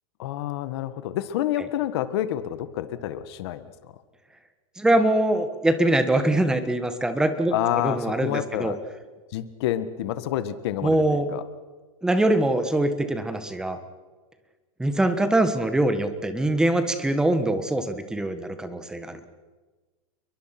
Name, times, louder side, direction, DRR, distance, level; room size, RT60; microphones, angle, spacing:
voice 1, 0.2-3.7 7.5-8.8 9.3-11.4, left 12 dB, 45° left, 12 dB, 1.5 m, -28 dB
voice 2, 4.8-8.7 10.8-11.3 12.0-13.8 14.8-19.2, right 1 dB, 5° right, 9 dB, 1.5 m, -23 dB
29.5 x 22.5 x 6.0 m, 1.3 s
supercardioid pair, 165°, 18 cm